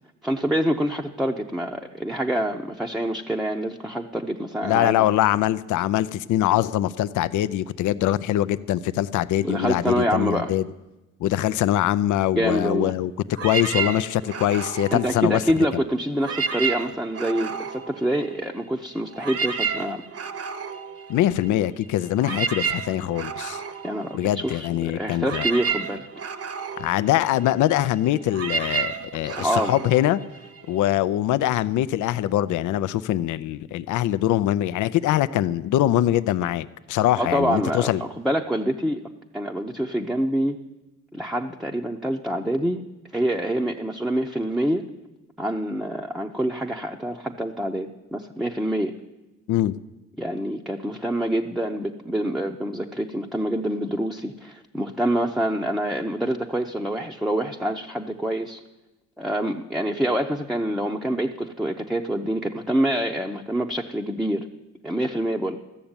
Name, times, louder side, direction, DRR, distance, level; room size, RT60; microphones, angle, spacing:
voice 1, 0.2-5.1 9.4-10.5 12.3-12.9 14.9-20.0 23.8-26.1 29.2-29.7 37.2-39.0 39.3-40.6 41.1-42.8 43.1-44.8 45.4-48.9 50.2-58.6 59.2-64.5 64.8-65.6, right 1 dB, ahead, 1 dB, 0.7 m, -26 dB
voice 2, 4.6-10.6 11.2-13.1 13.4-15.4 15.7-15.8 21.1-23.6 24.1-25.5 26.8-30.2 30.7-38.0 49.5-49.7, left 13 dB, 75° left, 16 dB, 0.5 m, -23 dB
sound 1, 13.3-15.8 16.1-18.7 19.0-30.9, right 5 dB, 50° right, 0.9 m, -31 dB
13.0 x 7.0 x 8.8 m, 1.0 s
cardioid pair, 90°, 30 cm